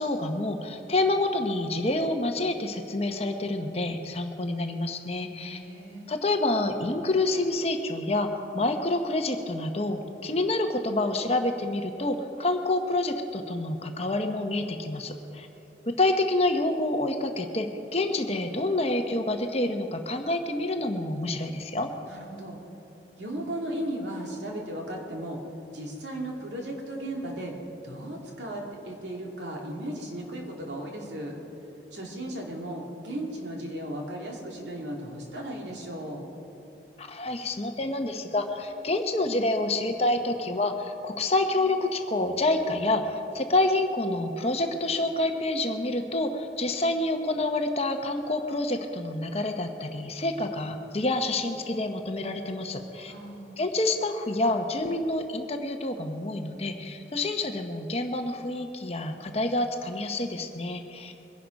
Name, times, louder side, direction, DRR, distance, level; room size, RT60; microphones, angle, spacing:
voice 1, 0.0-5.6 6.1-15.5 15.9-21.9 37.0-53.1 53.6-61.1, left 2 dB, 35° left, 5 dB, 1.0 m, -28 dB
voice 2, 5.4-6.1 22.1-22.6 23.2-25.4 25.7-27.5 27.8-31.3 31.9-36.2 53.1-53.6, right 1 dB, 80° right, 0 dB, 2.7 m, -36 dB
22.5 x 11.0 x 5.3 m, 2.9 s
head